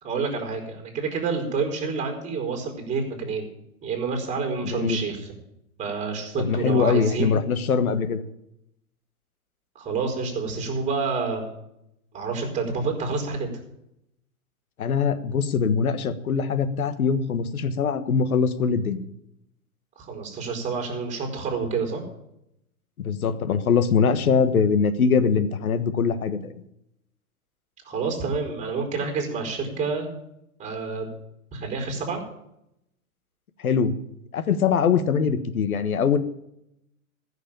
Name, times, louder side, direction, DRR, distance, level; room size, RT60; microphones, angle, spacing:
voice 1, 0.0-3.5 3.8-5.3 5.8-7.4 9.7-11.5 12.1-13.5 20.0-22.0 27.8-30.1 30.6-31.1 31.5-32.2, right 4 dB, 15° right, 2 dB, 4.7 m, -28 dB
voice 2, 6.4-8.2 14.8-19.1 23.0-26.5 33.6-34.0 34.3-36.2, left 6 dB, 75° left, 12 dB, 1.4 m, -22 dB
14.5 x 6.7 x 8.8 m, 0.81 s
hypercardioid pair, 115°, 43 cm